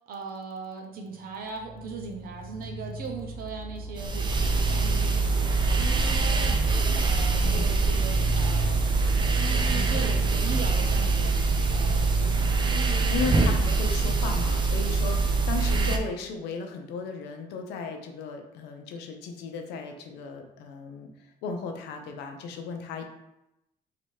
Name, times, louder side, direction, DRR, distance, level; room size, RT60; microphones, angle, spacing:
voice 1, 0.1-6.6 7.0-8.8 9.5-12.7 15.8-16.0, right 4 dB, 60° right, 2 dB, 0.8 m, -39 dB
sound 1, 1.3-14.1, right 1 dB, 20° left, 1.0 m, -37 dB
sound 2, 4.0-16.0, right 3 dB, 25° right, 0.6 m, -24 dB
voice 2, 12.8-21.1 21.4-23.0, left 5 dB, 85° left, 4 dB, 0.7 m, -36 dB
3.3 x 2.9 x 4.6 m, 0.89 s
cardioid pair, 110°, 17 cm